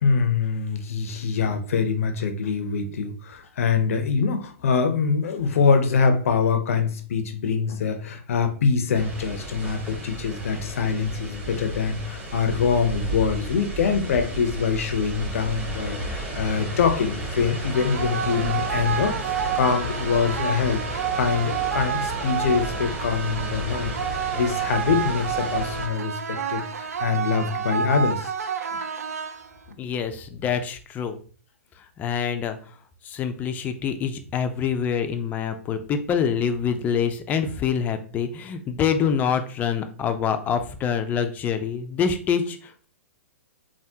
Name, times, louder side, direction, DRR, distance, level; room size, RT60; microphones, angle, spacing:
voice 1, 0.0-19.2 19.5-23.9 24.3-28.3 28.7-28.8 29.7-29.8, left 5 dB, 65° left, 8 dB, 0.5 m, -24 dB
sound 1, 8.9-25.9, right 1 dB, 20° right, 1.0 m, -33 dB
sound 2, 17.7-29.7, right 7 dB, 85° right, 0.4 m, -29 dB
voice 2, 29.8-31.2 32.0-32.6 33.0-42.9, left 7 dB, 20° left, 8 dB, 0.3 m, -26 dB
3.5 x 2.2 x 2.7 m, 0.41 s
hypercardioid pair, 125°, 8 cm